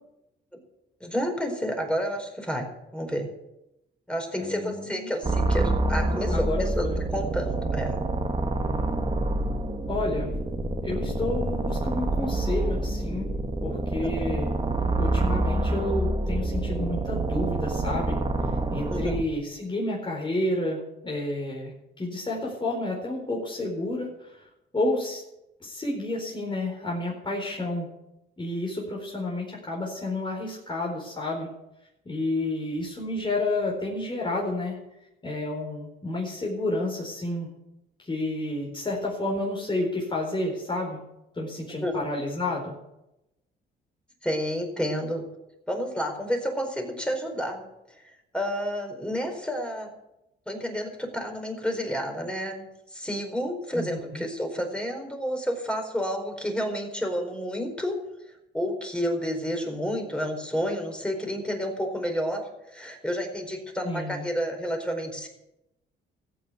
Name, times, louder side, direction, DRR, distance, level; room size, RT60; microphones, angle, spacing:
voice 1, 1.0-3.3 4.1-6.8 7.1-8.0 14.0-14.1 18.9-19.1 41.8-42.0 44.2-45.2 45.7-47.6 48.3-49.9 50.5-58.0 58.5-62.4 62.7-65.3, equal, 5° left, 3 dB, 4.6 m, -30 dB
voice 2, 4.4-5.1 6.3-7.0 9.9-10.4 10.8-13.3 13.6-14.5 15.0-18.2 18.7-21.7 22.0-24.5 24.7-25.2 25.6-27.9 28.4-31.5 32.0-34.8 35.2-37.5 38.0-41.0 41.3-42.7 53.7-54.2 63.8-64.3, left 2 dB, 25° left, -2 dB, 4.4 m, -30 dB
sound 1, 5.2-19.2, right 2 dB, 25° right, 1.7 m, -27 dB
15.0 x 8.9 x 8.1 m, 0.88 s
cardioid pair, 90°, 20 cm